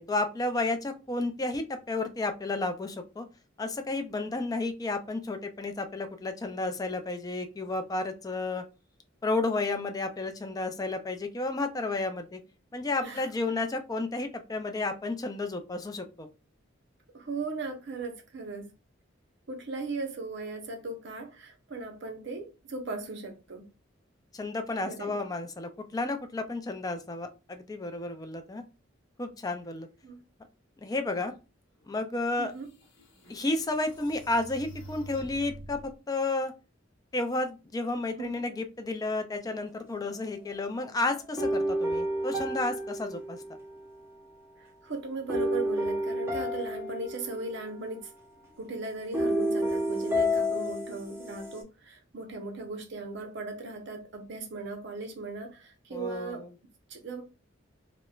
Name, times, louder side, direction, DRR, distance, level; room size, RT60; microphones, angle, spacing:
voice 1, 0.0-3.3 3.6-8.6 9.2-12.4 12.7-16.3 24.3-28.6 29.2-29.9 30.8-31.3 31.9-32.5 33.3-36.5 37.1-43.4 55.9-56.5, left 2 dB, 20° left, 0.3 m, -32 dB
voice 2, 17.1-18.7 19.5-23.7 24.8-25.2 30.0-30.2 32.4-32.7 38.2-38.3 44.6-48.1 48.6-56.5 56.9-57.2, right 3 dB, 65° right, 0.6 m, -38 dB
sound 1, 32.2-32.3 32.8-35.9, right 1 dB, 80° left, 0.9 m, -47 dB
sound 2, 41.4-43.9 45.3-47.8 49.1-51.6, equal, 15° right, 0.7 m, -30 dB
3.0 x 2.0 x 2.3 m
head